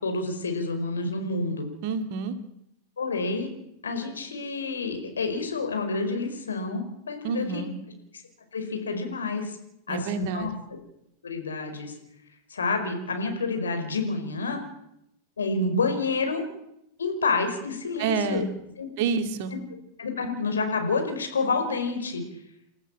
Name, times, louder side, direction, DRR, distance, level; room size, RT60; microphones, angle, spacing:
voice 1, 0.0-1.6 3.0-3.5 3.8-7.6 8.5-9.6 9.9-10.5 11.2-11.9 12.5-14.6 15.4-16.4 17.0-18.5 18.8-18.9 20.0-22.2, left 3 dB, 70° left, 5 dB, 5.1 m, -28 dB
voice 2, 1.8-2.3 7.2-7.7 9.9-10.6 18.0-18.5 19.0-19.5, right 5 dB, 50° right, 8 dB, 2.4 m, -28 dB
29.0 x 14.0 x 7.6 m, 0.80 s
figure-of-eight pair, 90°, 0 cm